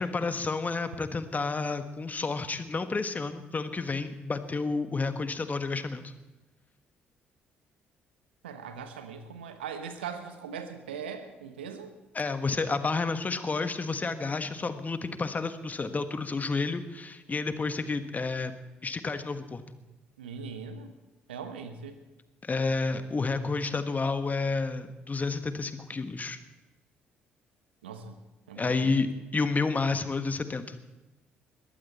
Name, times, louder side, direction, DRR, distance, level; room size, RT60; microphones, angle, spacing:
voice 1, 0.0-6.1 12.1-18.5 18.8-19.6 22.4-26.4 28.6-30.8, left 4 dB, 30° left, 10 dB, 1.5 m, -30 dB
voice 2, 8.4-11.9 20.2-20.9 21.3-22.0 27.8-28.2 28.5-28.9, right 6 dB, 80° right, 9 dB, 1.2 m, -40 dB
21.0 x 14.5 x 4.3 m, 1.1 s
figure-of-eight pair, 45°, 6 cm